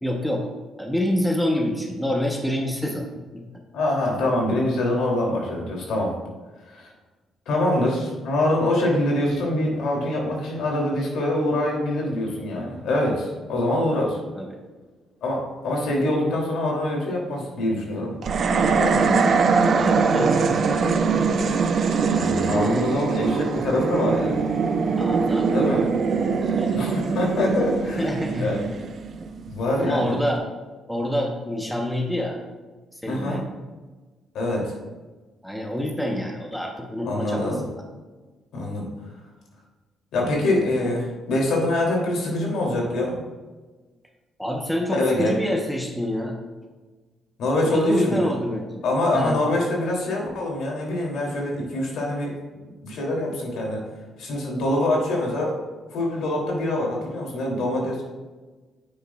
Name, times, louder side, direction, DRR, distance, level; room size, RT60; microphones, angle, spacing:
voice 1, 0.0-0.5 0.8-3.1 3.3-3.4 13.9-14.6 19.6-20.4 25.0-25.6 26.4-26.8 28.0-28.5 29.8-30.4 30.9-32.4 32.9-33.4 35.4-37.8 44.4-46.3 47.6-48.8 49.1-49.4, left 1 dB, 5° left, 1 dB, 0.9 m, -27 dB
voice 2, 3.7-6.1 6.7-6.9 7.5-14.2 15.2-18.1 18.6-19.1 22.0-24.4 25.5-25.8 26.7-28.1 28.4-28.6 29.5-30.1 33.1-33.4 34.3-34.7 37.0-37.6 38.5-38.9 40.1-43.2 44.9-45.4 47.4-48.3 48.8-53.8 54.2-55.5 55.9-58.0, left 1 dB, 75° left, -1 dB, 2.8 m, -24 dB
sound 1, 18.2-29.6, right 5 dB, 50° right, 0.6 m, -22 dB
10.0 x 8.6 x 2.4 m, 1.3 s
cardioid pair, 140°, 0 cm